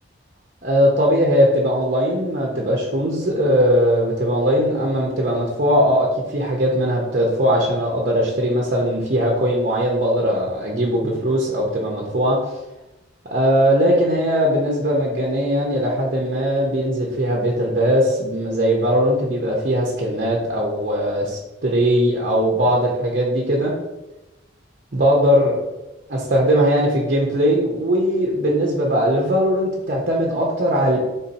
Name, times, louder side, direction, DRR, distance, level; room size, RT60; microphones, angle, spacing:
voice 1, 0.6-12.4 13.3-23.7 24.9-25.6 26.1-31.0, equal, 50° right, -2 dB, 0.7 m, -19 dB
3.9 x 2.7 x 4.0 m, 1.0 s
head